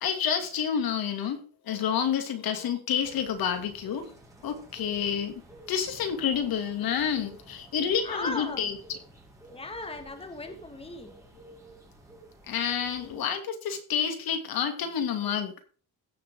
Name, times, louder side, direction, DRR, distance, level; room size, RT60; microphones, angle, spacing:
voice 1, 0.0-1.4 1.7-4.0 4.4-5.4 5.7-9.0 12.5-15.5, left 8 dB, 60° left, 7 dB, 2.5 m, -29 dB
sound 1, 3.0-13.2, right 2 dB, 10° right, 3.7 m, -51 dB
voice 2, 8.0-8.6 9.5-11.1, left 2 dB, 15° left, 8 dB, 1.8 m, -37 dB
16.5 x 6.9 x 3.7 m, 0.40 s
cardioid pair, 115°, 40 cm